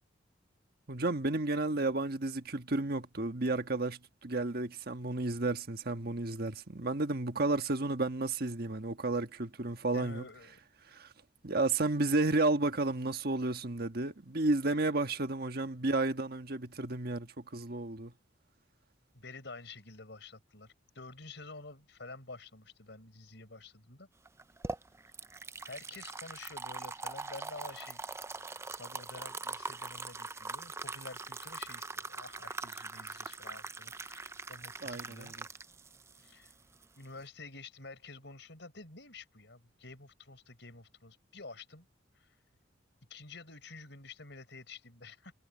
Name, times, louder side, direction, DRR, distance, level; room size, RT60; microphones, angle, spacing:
voice 1, 0.9-10.2 10.9-11.1 11.4-18.1 34.8-35.3, right 2 dB, 55° right, 1.4 m, -32 dB
voice 2, 9.9-10.6 14.8-14.9 19.1-24.1 25.6-28.0 28.4-35.4 36.2-36.6 37.0-41.9 42.1-42.4 43.1-45.3, left 3 dB, 65° left, 5.4 m, -50 dB
sound 1, 24.3-37.2, right 3 dB, 15° right, 0.4 m, -42 dB
head